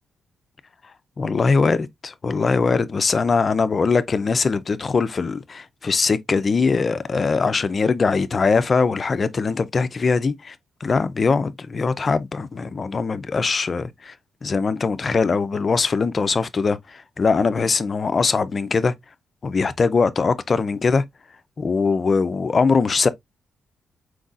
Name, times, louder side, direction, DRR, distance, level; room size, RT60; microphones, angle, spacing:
voice 1, 1.2-10.5 10.8-14.1 14.4-18.9 19.4-21.0 21.6-23.1, left 4 dB, 30° left, 0.4 m, -21 dB
4.5 x 4.0 x 2.4 m
wide cardioid pair, 155°, 0 cm